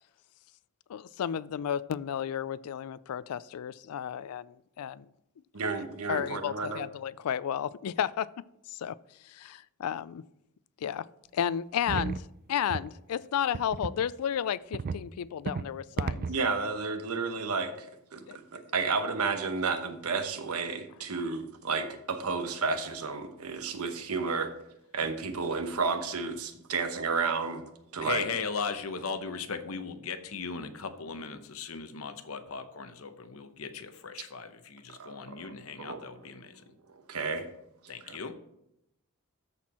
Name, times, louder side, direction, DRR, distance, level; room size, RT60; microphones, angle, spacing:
voice 1, 0.9-5.1 6.1-8.3 8.7-9.0 9.2-10.2 10.8-11.1 11.3-12.2 12.5-16.3 18.3-18.4, left 9 dB, 90° left, 19 dB, 0.4 m, -32 dB
voice 2, 5.5-6.8 16.3-17.9 18.1-24.5 24.9-27.6 27.9-28.3 35.0-35.5 35.9-36.0 36.9-37.5 38.0-38.2, right 4 dB, 85° right, 7 dB, 1.0 m, -32 dB
sound 1, 11.9-12.2 12.7-12.9 13.5-14.0 14.7-15.0 15.5-15.7 16.0-16.4, right 5 dB, 40° right, 0.3 m, -33 dB
voice 3, 28.0-36.6 37.9-38.3, left 5 dB, 70° left, 9 dB, 0.8 m, -37 dB
13.5 x 4.5 x 4.2 m, 0.82 s
head